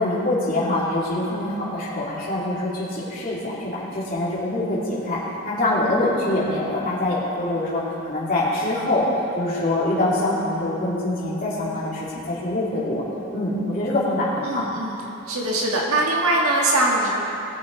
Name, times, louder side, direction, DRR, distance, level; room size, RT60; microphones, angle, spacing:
voice 1, 0.0-5.2 5.5-9.1 9.3-13.0 13.3-14.7, left 1 dB, 40° left, -7 dB, 2.8 m, -24 dB
voice 2, 14.5-15.0 15.3-17.1, right 2 dB, 80° right, -3 dB, 1.8 m, -22 dB
20.0 x 7.2 x 4.0 m, 2.9 s
head